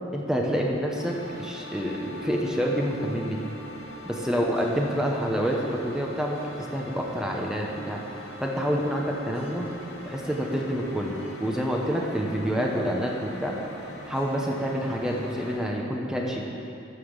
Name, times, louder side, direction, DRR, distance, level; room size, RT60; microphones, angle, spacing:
voice 1, 0.1-3.4 4.1-8.0 8.4-9.7 10.0-13.6 14.1-16.4, equal, 5° right, -1 dB, 1.0 m, -28 dB
sound 1, 0.9-15.6, equal, 80° left, 2.0 m, -42 dB
13.0 x 5.8 x 6.7 m, 2.7 s
head